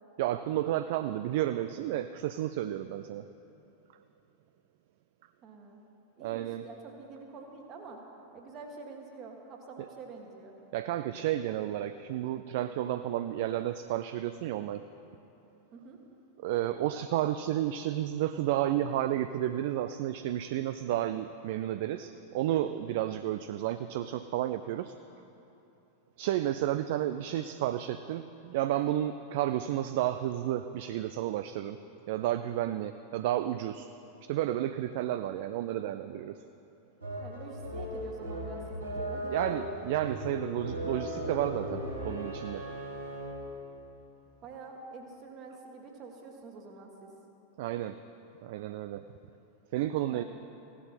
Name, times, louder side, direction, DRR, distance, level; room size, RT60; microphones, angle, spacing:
voice 1, 0.2-3.2 6.2-6.7 10.7-14.9 16.4-24.9 26.2-31.8 32.1-33.9 34.2-36.4 39.3-42.7 47.6-48.0 48.4-49.0 49.7-50.2, right 12 dB, 50° right, 11 dB, 0.3 m, -31 dB
voice 2, 5.4-5.8 6.2-8.0 8.3-10.5 15.7-16.0 37.2-39.7 44.4-47.1 50.1-50.2, right 4 dB, 35° right, 2 dB, 1.7 m, -47 dB
sound 1, 37.0-43.5, equal, 80° right, 3.3 m, -37 dB
16.0 x 11.0 x 4.4 m, 2.9 s
figure-of-eight pair, 90°, 0 cm